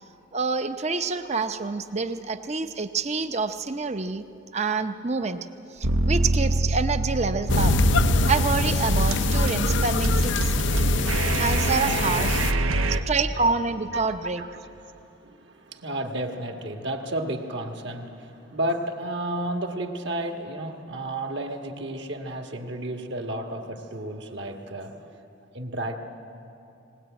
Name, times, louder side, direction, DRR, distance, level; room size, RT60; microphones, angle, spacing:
voice 1, 0.3-4.2 4.5-5.5 5.7-7.7 8.2-10.6 11.3-12.4 13.1-14.4, right 4 dB, 30° right, 9 dB, 0.7 m, -27 dB
sound 1, 5.8-13.0, right 2 dB, 85° right, 0.9 m, -24 dB
sound 2, 7.5-12.5, left 5 dB, 60° left, 0.5 m, -26 dB
voice 2, 13.9-25.2 25.5-26.0, right 1 dB, 55° right, 3 dB, 1.6 m, -33 dB
19.5 x 19.5 x 8.9 m, 2.8 s
head